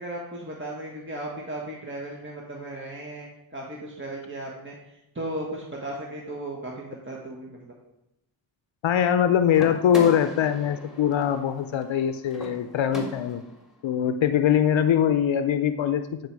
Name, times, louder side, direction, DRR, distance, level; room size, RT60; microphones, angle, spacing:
voice 1, 0.0-4.7 5.1-7.7, right 1 dB, 25° right, -2 dB, 1.6 m, -36 dB
voice 2, 8.8-13.4 13.8-16.0, left 9 dB, 70° left, 10 dB, 0.6 m, -22 dB
sound 1, 9.5-13.6, equal, ahead, 2.2 m, -39 dB
9.8 x 4.6 x 4.7 m, 0.89 s
cardioid pair, 60°, 48 cm